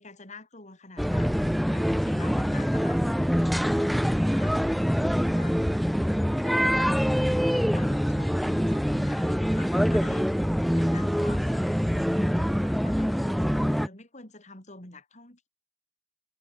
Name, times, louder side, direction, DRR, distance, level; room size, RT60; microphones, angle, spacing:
voice 1, 0.0-4.6 5.1-5.6 6.3-7.0 7.5-10.3 10.7-15.5, left 2 dB, 40° left, 6.7 m, -47 dB
sound 1, 1.0-13.9, equal, ahead, 1.9 m, -25 dB
head